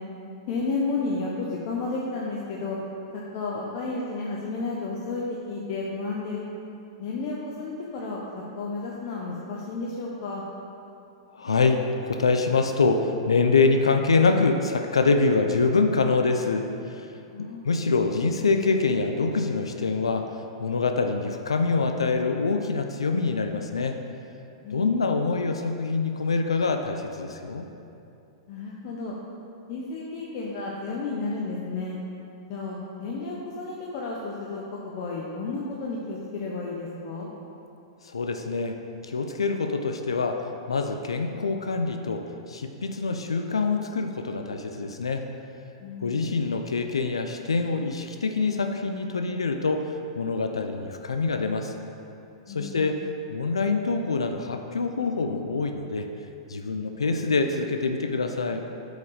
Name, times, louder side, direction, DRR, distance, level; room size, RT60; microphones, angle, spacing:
voice 1, 0.5-2.8 3.1-6.4 7.0-10.4 17.3-17.7 24.6-25.1 28.5-29.1 29.7-32.0 32.5-37.3 45.8-46.2 52.5-53.0, left 3 dB, 50° left, -3 dB, 1.0 m, -32 dB
voice 2, 11.3-17.1 17.6-20.3 20.6-24.0 24.7-27.7 38.0-38.8 39.0-45.2 46.0-51.7 52.5-56.1 56.5-58.6, left 4 dB, 85° left, 5 dB, 0.5 m, -25 dB
8.1 x 4.9 x 4.9 m, 2.7 s
hypercardioid pair, 110°, 3 cm